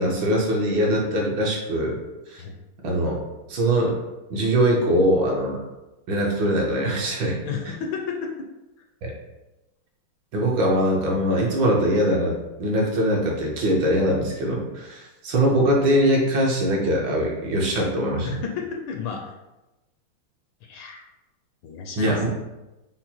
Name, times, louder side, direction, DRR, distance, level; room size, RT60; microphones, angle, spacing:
voice 1, 0.0-2.0 2.3-2.4 2.8-3.2 3.5-3.9 4.3-5.6 6.1-7.4 9.0-9.1 10.3-18.4 22.0-22.3, equal, 65° right, -2 dB, 1.4 m, -22 dB
voice 2, 7.4-8.5 18.2-19.3 20.6-21.0 21.6-22.3, left 6 dB, 75° left, 2 dB, 1.2 m, -32 dB
5.6 x 2.1 x 4.2 m, 1.0 s
omnidirectional pair, 2.4 m